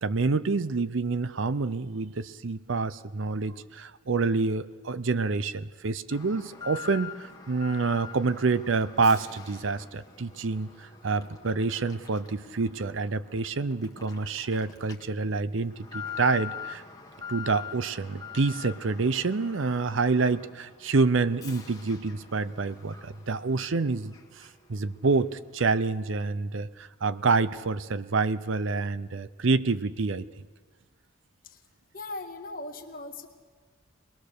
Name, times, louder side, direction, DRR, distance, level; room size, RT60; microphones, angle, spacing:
voice 1, 0.0-16.8 17.3-30.3, right 4 dB, 65° right, 15 dB, 0.6 m, -27 dB
Alarm, 6.1-24.8 25.1-25.2 25.8-25.9, left 7 dB, 15° left, 1.5 m, -44 dB
voice 2, 31.9-33.3, left 2 dB, 40° left, 3 dB, 1.6 m, -39 dB
22.0 x 20.5 x 6.7 m, 1.5 s
head